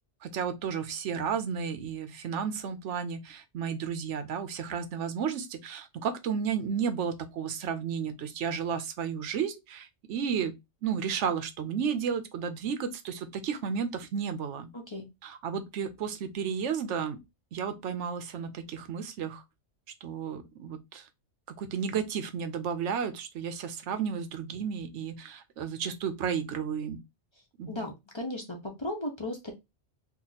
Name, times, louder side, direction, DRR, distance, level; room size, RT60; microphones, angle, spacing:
voice 1, 0.2-10.6 10.8-14.7 15.2-17.2 17.5-19.4 20.0-21.1 21.5-27.0 27.6-27.8, right 7 dB, 85° right, 1.0 m, -33 dB
voice 2, 14.7-15.1 27.7-29.5, left 1 dB, 30° left, 0.6 m, -36 dB
2.8 x 2.4 x 3.8 m
omnidirectional pair, 1.2 m